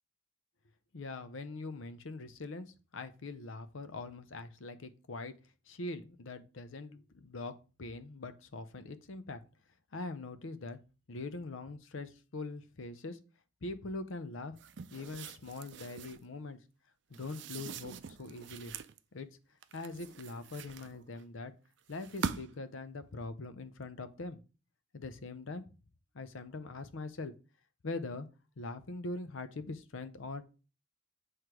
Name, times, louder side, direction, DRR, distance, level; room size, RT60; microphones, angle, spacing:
voice 1, 0.9-5.3 5.7-9.4 9.9-10.8 11.1-13.2 13.6-14.6 14.9-16.6 17.1-18.7 19.1-19.3 19.7-21.5 21.9-24.4 24.9-25.7 26.1-27.3 27.8-28.3 28.6-30.4, left 3 dB, 80° left, 11 dB, 0.7 m, -42 dB
sound 1, 14.6-16.3 17.1-19.0 19.6-21.2 21.9-22.7, right 6 dB, 60° right, 0.4 m, -43 dB
7.9 x 3.2 x 4.6 m, 0.34 s
head